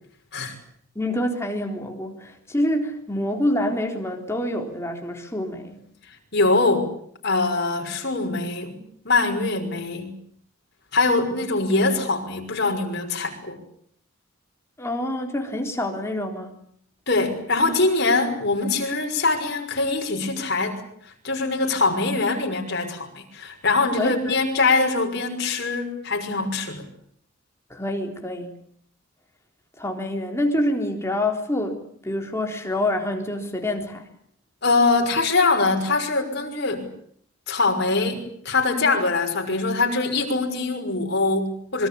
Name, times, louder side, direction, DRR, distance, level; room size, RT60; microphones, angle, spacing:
voice 1, 1.0-5.8 14.8-16.5 24.0-24.2 27.7-28.5 29.8-34.1, left 1 dB, 15° left, 3 dB, 3.9 m, -26 dB
voice 2, 6.3-6.9 7.2-10.2 10.9-13.6 17.1-26.8 34.6-36.9 37.5-41.9, left 3 dB, 55° left, 3 dB, 6.0 m, -23 dB
26.0 x 23.5 x 8.6 m, 0.63 s
head